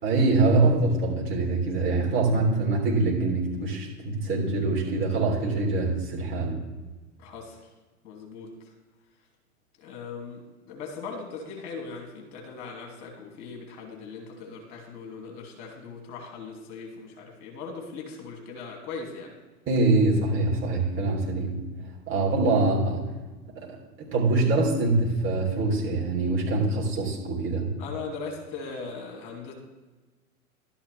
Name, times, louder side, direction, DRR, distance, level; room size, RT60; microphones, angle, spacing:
voice 1, 0.0-6.6 19.7-21.6 22.1-23.1 23.6-23.7 24.0-27.7, right 3 dB, 25° right, -3 dB, 3.6 m, -24 dB
voice 2, 7.2-7.7 8.0-8.5 9.8-19.3 27.8-29.5, left 4 dB, 50° left, 1 dB, 2.6 m, -39 dB
12.5 x 10.0 x 3.5 m, 1.2 s
figure-of-eight pair, 100°, 45 cm